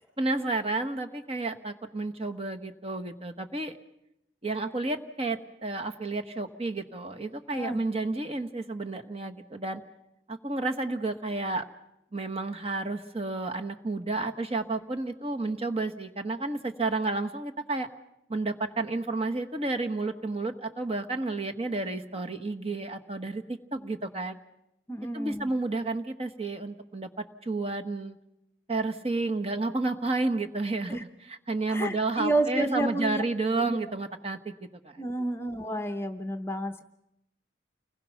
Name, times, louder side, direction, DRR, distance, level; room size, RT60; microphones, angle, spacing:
voice 1, 0.2-3.8 4.4-9.8 10.3-11.6 12.1-17.9 18.3-24.4 25.1-28.2 28.7-34.5 34.8-35.1, right 2 dB, 30° right, 6 dB, 1.2 m, -31 dB
voice 2, 24.9-25.5 30.9-31.0 31.7-33.2 33.6-33.8 35.0-36.8, right 1 dB, 15° left, 7 dB, 0.8 m, -30 dB
29.5 x 21.0 x 5.9 m, 0.84 s
head